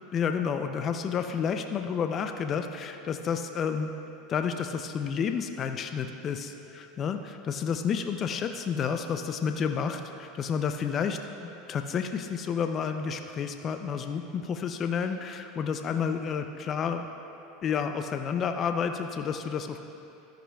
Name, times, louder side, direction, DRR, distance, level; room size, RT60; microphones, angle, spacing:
voice 1, 0.1-3.9 4.3-17.1 17.6-19.8, left 6 dB, 40° left, 7 dB, 0.5 m, -30 dB
13.0 x 10.0 x 2.3 m, 2.9 s
hypercardioid pair, 95°, 0 cm